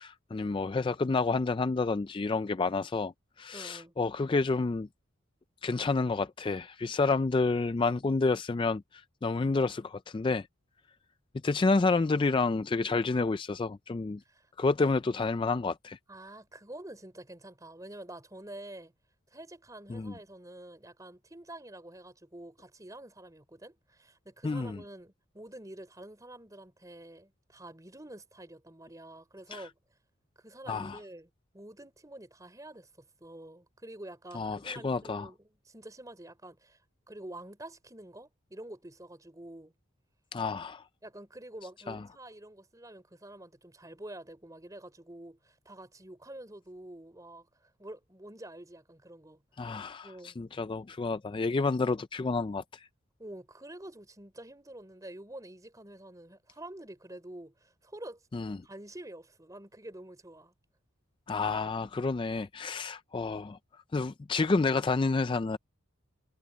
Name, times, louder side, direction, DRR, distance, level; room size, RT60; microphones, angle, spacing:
voice 1, 0.0-4.9 5.6-10.5 11.4-14.2 14.6-16.0 19.9-20.1 24.4-24.8 29.5-29.7 30.7-31.0 34.3-35.3 40.3-40.8 41.9-42.0 49.6-52.9 58.3-58.6 61.3-63.6 63.9-65.6, left 3 dB, 25° left, 0.3 m, -29 dB
voice 2, 3.5-3.9 14.3-14.5 16.1-18.9 19.3-29.8 30.4-36.8 37.1-39.7 41.0-49.4 50.0-50.4 53.2-58.2 58.6-60.5, right 1 dB, 15° right, 3.9 m, -47 dB
head